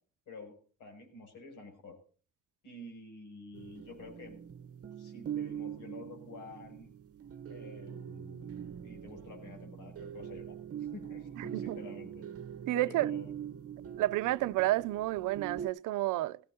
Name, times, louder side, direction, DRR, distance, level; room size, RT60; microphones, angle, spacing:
voice 1, 0.3-2.0 2.6-4.4 5.0-6.9 7.5-8.5 8.8-12.3 12.7-13.3, left 3 dB, 85° left, 6.9 m, -49 dB
sound 1, 3.5-15.7, right 9 dB, 50° right, 1.0 m, -43 dB
voice 2, 11.4-11.8 12.7-13.1 14.0-16.4, right 16 dB, 90° right, 0.6 m, -30 dB
17.5 x 16.5 x 2.8 m
cardioid pair, 90°, 30 cm